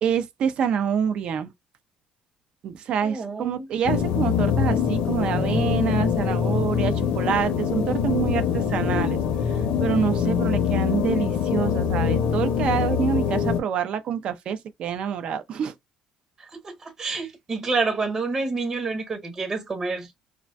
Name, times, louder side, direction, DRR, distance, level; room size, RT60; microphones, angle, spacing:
voice 1, 0.0-1.5 2.6-9.2 9.5-15.7, right 7 dB, 55° right, 0.5 m, -26 dB
voice 2, 3.0-3.7 16.6-20.1, right 4 dB, 30° right, 1.0 m, -28 dB
sound 1, 3.9-13.6, left 7 dB, 75° left, 0.7 m, -24 dB
2.5 x 2.1 x 3.3 m
cardioid pair, 125°, 2 cm